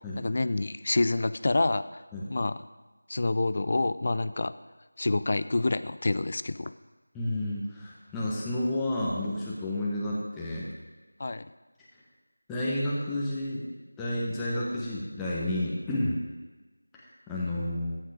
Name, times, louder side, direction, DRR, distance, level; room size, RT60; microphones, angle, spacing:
voice 1, 0.2-2.0 2.3-2.6 3.1-4.5 5.0-6.7 11.2-11.5, left 2 dB, 40° left, 14 dB, 0.5 m, -27 dB
voice 2, 7.1-10.7 12.5-13.7 14.0-16.2 16.9-18.0, left 1 dB, 5° left, -7 dB, 1.2 m, -31 dB
14.0 x 9.7 x 5.1 m, 1.2 s
figure-of-eight pair, 170°, 0 cm